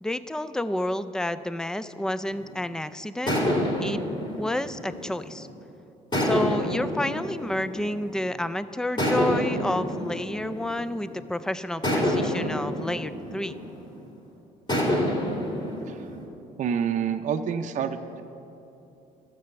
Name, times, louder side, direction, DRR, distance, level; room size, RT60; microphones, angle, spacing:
voice 1, 0.0-3.4 3.8-4.0 4.4-5.5 6.2-13.6, left 1 dB, 5° left, 13 dB, 0.3 m, -30 dB
sound 1, 2.3-2.7 3.3-5.5 6.1-8.4 9.0-11.1 11.8-14.1 14.7-16.2, equal, 25° left, 2.9 m, -28 dB
voice 2, 16.6-18.2, right 7 dB, 45° right, 7 dB, 0.6 m, -28 dB
13.5 x 6.9 x 6.8 m, 2.9 s
cardioid pair, 110°, 17 cm